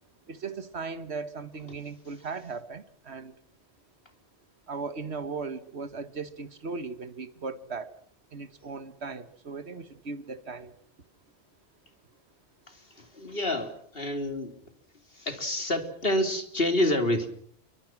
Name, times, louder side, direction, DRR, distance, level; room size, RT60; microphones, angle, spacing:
voice 1, 0.3-3.3 4.7-7.9 8.3-10.7, right 4 dB, 85° right, 12 dB, 1.8 m, -37 dB
voice 2, 12.7-14.5 15.1-17.3, left 1 dB, 60° left, 7 dB, 3.6 m, -28 dB
29.0 x 24.0 x 6.1 m, 0.63 s
omnidirectional pair, 1.1 m